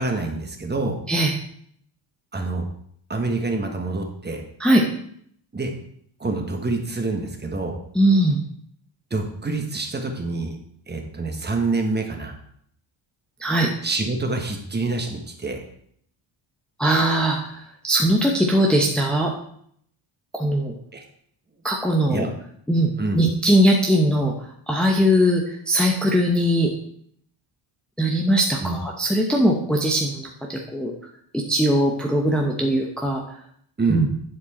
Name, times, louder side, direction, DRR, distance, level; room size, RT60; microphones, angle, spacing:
voice 1, 0.0-1.0 2.3-2.7 3.1-4.4 5.5-5.7 6.2-7.8 9.1-10.6 10.9-12.3 13.8-15.6 20.9-21.0 22.1-22.3 23.0-23.2 28.6-28.8 33.8-34.1, right 3 dB, 20° right, 3 dB, 1.3 m, -26 dB
voice 2, 7.9-8.4 13.4-13.7 16.8-17.6 17.8-19.3 20.3-20.7 21.6-22.3 22.7-24.3 24.7-26.7 28.0-30.9 31.3-33.2 33.9-34.1, right 1 dB, ahead, -1 dB, 0.8 m, -20 dB
10.5 x 4.5 x 4.3 m, 0.67 s
cardioid pair, 115°, 49 cm